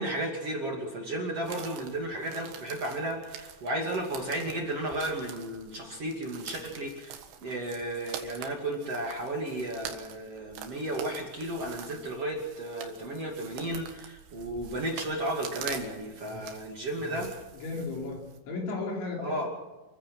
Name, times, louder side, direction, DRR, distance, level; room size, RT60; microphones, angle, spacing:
voice 1, 0.0-17.3 19.2-19.5, right 1 dB, 40° right, 0 dB, 2.9 m, -34 dB
sound 1, 1.4-18.4, right 8 dB, 75° right, 3.8 m, -45 dB
voice 2, 17.5-19.5, left 3 dB, 85° left, 0 dB, 6.7 m, -36 dB
29.0 x 15.0 x 6.2 m, 1.2 s
omnidirectional pair, 5.2 m